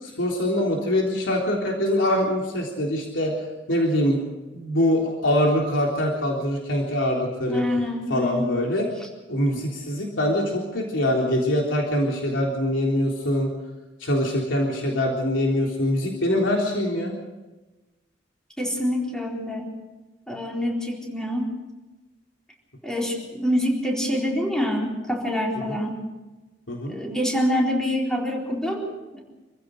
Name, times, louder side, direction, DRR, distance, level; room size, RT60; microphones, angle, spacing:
voice 1, 0.0-3.3 3.7-4.2 4.5-7.6 8.1-8.9 9.3-13.5 14.0-17.2 25.7-25.8 26.7-27.0, left 1 dB, 80° left, -1 dB, 3.7 m, -23 dB
voice 2, 7.5-8.6 18.6-19.7 20.3-21.5 22.8-26.0 26.9-29.2, equal, 5° left, -1 dB, 4.1 m, -26 dB
27.0 x 15.5 x 6.5 m, 1.1 s
head